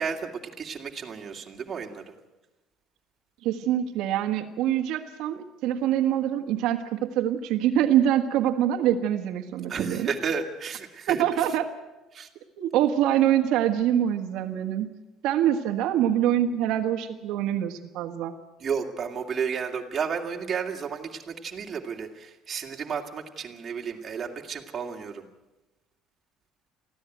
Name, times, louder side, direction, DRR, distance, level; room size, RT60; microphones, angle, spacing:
voice 1, 0.0-2.0 9.7-11.2 12.1-12.3 18.6-25.3, right 6 dB, 25° right, 1 dB, 2.4 m, -32 dB
voice 2, 3.4-10.1 11.1-11.7 12.6-14.9 15.2-18.3, right 11 dB, 70° right, 4 dB, 1.5 m, -25 dB
24.0 x 15.5 x 9.3 m, 1.1 s
cardioid pair, 165°, 0 cm